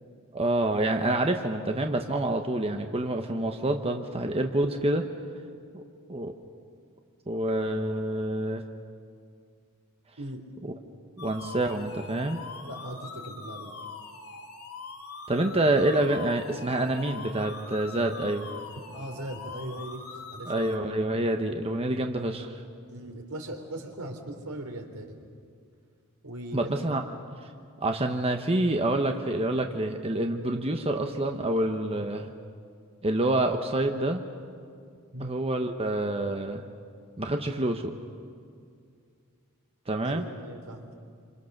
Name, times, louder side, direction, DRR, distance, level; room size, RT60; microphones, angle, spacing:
voice 1, 0.3-5.0 5.7-5.8 6.1-6.3 7.3-8.6 11.2-12.4 15.3-18.5 20.5-22.6 26.5-27.0 27.4-27.5 27.8-32.3 33.0-34.2 35.2-36.6 37.2-37.9 39.9-40.3, right 1 dB, 25° right, 4 dB, 1.1 m, -27 dB
sound 1, 11.2-20.8, left 4 dB, 80° left, 2.9 m, -43 dB
voice 2, 12.6-13.7 18.9-20.7 22.9-25.2 26.2-26.8 35.1-35.3 40.0-40.9, right 1 dB, 80° right, 4 dB, 3.3 m, -39 dB
27.0 x 26.5 x 6.6 m, 2.3 s
head